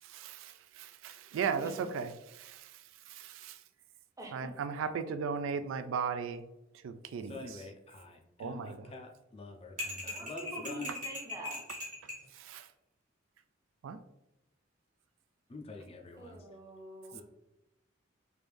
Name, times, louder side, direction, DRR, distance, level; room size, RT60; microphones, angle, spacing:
voice 1, 0.1-2.1 2.4-2.6 3.2-3.6 4.3-6.4 6.8-7.3 8.4-8.7 12.4-12.6 13.8-14.0, right 6 dB, 80° right, 10 dB, 0.3 m, -36 dB
voice 2, 1.5-1.9 4.2-4.7 10.1-11.6 16.2-17.2, right 1 dB, 15° right, 0 dB, 0.6 m, -46 dB
voice 3, 7.2-11.0 15.5-16.5 17.1-17.2, left 2 dB, 30° left, 3 dB, 0.4 m, -47 dB
sound 1, 9.8-12.2, left 2 dB, 40° right, 1.3 m, -40 dB
3.3 x 2.6 x 3.3 m, 0.88 s
head